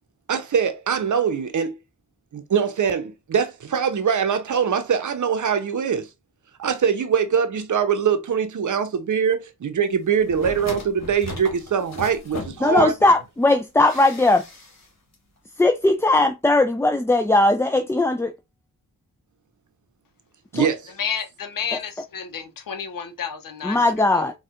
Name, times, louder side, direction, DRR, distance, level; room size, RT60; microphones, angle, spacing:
voice 1, 0.3-1.8 2.3-6.1 6.6-12.9 20.5-20.9, right 7 dB, 55° right, 0.7 m, -23 dB
sound 1, 10.2-13.2 13.8-14.9 15.1-15.2, left 3 dB, 45° left, 1.4 m, -37 dB
voice 2, 12.6-14.4 15.6-18.3 20.5-20.7 23.6-24.3, left 2 dB, 10° left, 0.3 m, -18 dB
voice 3, 21.0-24.3, left 7 dB, 65° left, 0.7 m, -31 dB
4.1 x 2.3 x 2.4 m
supercardioid pair, 40°, 37 cm